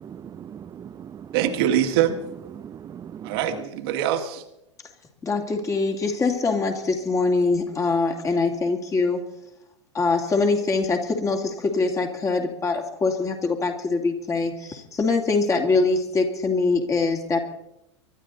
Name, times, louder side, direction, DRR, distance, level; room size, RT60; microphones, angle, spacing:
voice 1, 0.5-1.4 1.7-1.8 2.5-3.6, right 9 dB, 20° right, 8 dB, 0.7 m, -40 dB
voice 2, 1.3-2.2 3.2-4.4, right 10 dB, 55° right, 5 dB, 1.9 m, -23 dB
voice 3, 5.2-9.2 9.9-17.4, left 3 dB, 20° left, 4 dB, 2.5 m, -23 dB
24.0 x 12.0 x 4.0 m, 0.84 s
figure-of-eight pair, 90°, 15 cm